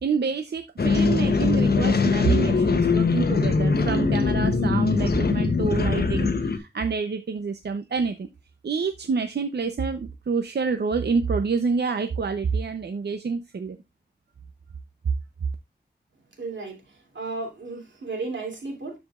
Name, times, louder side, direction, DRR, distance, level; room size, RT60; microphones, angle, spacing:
voice 1, 0.0-8.3 8.6-13.8, right 5 dB, 65° right, 0.7 m, -27 dB
sound 1, 0.8-6.6, left 4 dB, 60° left, 1.0 m, -22 dB
voice 2, 16.4-16.8 17.1-18.9, right 3 dB, 90° right, 2.9 m, -33 dB
12.5 x 5.1 x 2.4 m
wide cardioid pair, 80°, 19 cm